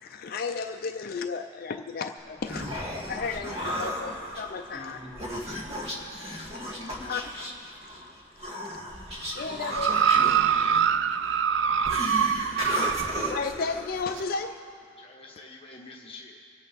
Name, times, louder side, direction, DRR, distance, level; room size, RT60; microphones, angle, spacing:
voice 1, 0.0-2.7 3.1-5.0 6.3-6.4 7.1-7.2 9.3-10.1 12.1-12.3 12.8-13.0 13.3-14.6, left 5 dB, 50° left, 7 dB, 0.4 m, -33 dB
Human voice, 2.2-14.4, left 1 dB, 30° right, 1.9 m, -35 dB
voice 2, 3.4-4.2 6.6-7.5 15.0-16.4, left 2 dB, 30° left, -2 dB, 1.2 m, -46 dB
voice 3, 4.7-5.9 8.5-8.6 9.4-10.7, left 1 dB, 5° right, -8 dB, 3.0 m, -48 dB
sound 1, 9.7-13.4 14.2-14.3, right 7 dB, 60° right, 0.4 m, -24 dB
26.0 x 8.8 x 4.0 m, 2.4 s
head